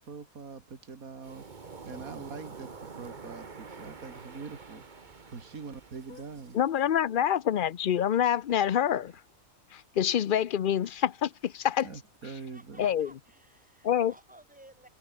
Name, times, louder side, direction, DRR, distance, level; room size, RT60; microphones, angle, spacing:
voice 1, 0.0-1.4 1.8-4.8 5.3-6.6 11.8-12.8, right 5 dB, 75° right, 2.8 m, -43 dB
Waves surf, 1.2-6.7, right 4 dB, 35° right, 1.4 m, -47 dB
voice 2, 6.5-9.1 9.7-11.9 12.8-13.1 13.8-14.1, left 9 dB, 55° left, 0.5 m, -26 dB
voice 3, 12.5-14.9, right 1 dB, 5° right, 4.9 m, -55 dB
omnidirectional pair, 1.5 m